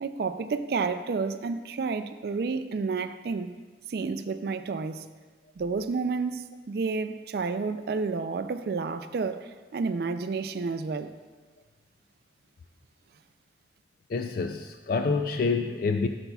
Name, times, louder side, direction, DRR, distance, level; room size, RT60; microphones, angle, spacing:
voice 1, 0.0-3.5 3.9-5.0 5.6-11.1, right 4 dB, 60° right, 0.3 m, -30 dB
voice 2, 14.1-16.1, left 4 dB, 50° left, 0.3 m, -27 dB
12.0 x 6.9 x 2.3 m
head